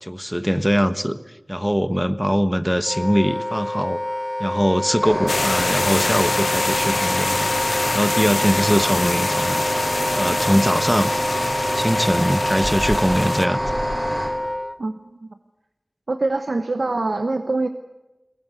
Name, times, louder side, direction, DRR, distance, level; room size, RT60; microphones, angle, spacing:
voice 1, 0.0-1.2 1.5-4.0 4.4-7.5 7.9-9.6 10.2-11.1 11.8-13.6, equal, 5° right, 11 dB, 1.3 m, -21 dB
Wind instrument woodwind instrument, 2.8-14.8, left 1 dB, 25° left, 0.9 m, -27 dB
sound 1, 5.0-14.3, right 1 dB, 40° right, 7.5 m, -28 dB
sound 2, 5.3-13.4, left 3 dB, 90° left, 0.8 m, -26 dB
voice 2, 14.8-15.4 16.1-17.7, right 2 dB, 85° right, 8 dB, 1.0 m, -24 dB
22.5 x 19.0 x 8.2 m, 1.0 s
wide cardioid pair, 45°, 0 cm